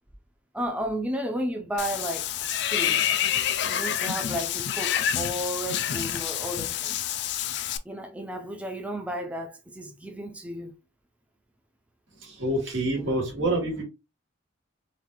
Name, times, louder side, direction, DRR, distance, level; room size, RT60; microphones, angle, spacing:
voice 1, 0.5-3.0 3.7-7.0 7.9-10.7 12.9-13.2, equal, 5° right, 0.4 m, -33 dB
Water / Bathtub (filling or washing), 1.8-7.8, left 10 dB, 60° left, 0.4 m, -28 dB
voice 2, 12.2-13.8, right 1 dB, 85° right, 2.0 m, -27 dB
3.9 x 2.5 x 2.9 m
head